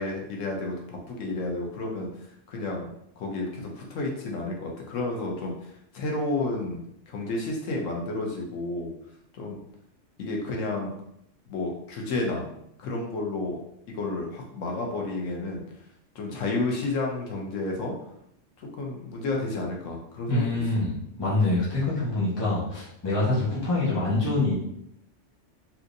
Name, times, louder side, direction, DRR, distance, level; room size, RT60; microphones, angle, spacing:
voice 1, 0.0-2.1 2.5-2.9 3.2-5.5 5.9-6.8 7.1-8.9 9.3-9.6 10.2-10.9 11.5-12.5 12.8-13.6 13.9-15.6 16.1-17.9 18.6-20.6, left 2 dB, 90° left, 0 dB, 1.1 m, -31 dB
voice 2, 20.3-24.5, left 2 dB, 25° left, -8 dB, 0.9 m, -25 dB
3.4 x 2.8 x 2.5 m, 0.76 s
omnidirectional pair, 1.3 m